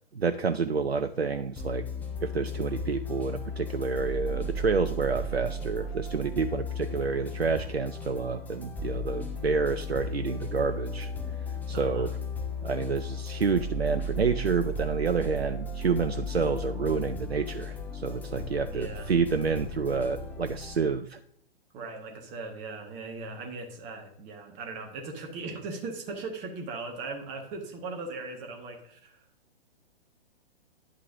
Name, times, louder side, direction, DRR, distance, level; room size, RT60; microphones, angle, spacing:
voice 1, 0.2-1.8 2.2-11.1 11.7-12.1 12.6-21.2, right 5 dB, 85° right, 10 dB, 0.5 m, -29 dB
sound 1, 1.6-20.8, left 1 dB, 5° left, 0.9 m, -35 dB
voice 2, 11.7-12.1 18.3-19.1 21.7-29.2, right 3 dB, 25° right, 2 dB, 1.5 m, -39 dB
10.0 x 8.2 x 2.6 m, 0.66 s
figure-of-eight pair, 120°, 30 cm